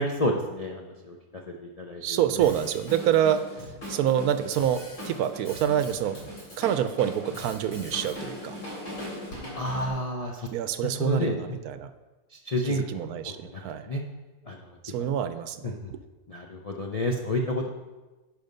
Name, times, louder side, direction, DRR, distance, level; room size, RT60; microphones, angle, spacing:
voice 1, 0.0-2.2 9.6-10.5 10.8-11.6 12.5-13.6 13.9-14.0 14.5-14.6 15.0-15.1 15.6-15.9 16.3-17.7, left 1 dB, 50° left, 0 dB, 0.4 m, -30 dB
voice 2, 2.0-6.2 6.6-8.6 10.5-11.9 12.6-13.9 14.8-16.0, right 10 dB, 75° right, 11 dB, 1.0 m, -27 dB
Drum kit, 2.4-9.9, left 1 dB, 90° left, 3.9 m, -40 dB
10.5 x 5.1 x 5.4 m, 1.2 s
omnidirectional pair, 1.7 m